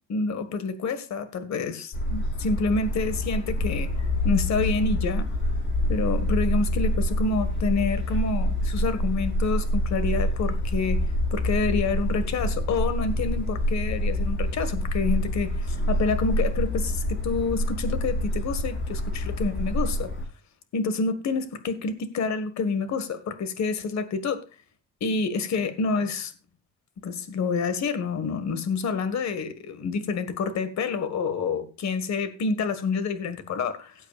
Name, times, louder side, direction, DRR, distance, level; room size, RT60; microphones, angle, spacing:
voice 1, 0.1-3.9 4.2-5.3 5.9-11.0 11.3-20.1 20.7-24.4 25.0-26.3 27.0-33.9, left 4 dB, 65° left, 1.7 m, -28 dB
sound 1, 1.9-20.2, left 1 dB, 40° left, 5.6 m, -26 dB
17.5 x 8.3 x 2.5 m
cardioid pair, 90°, 30 cm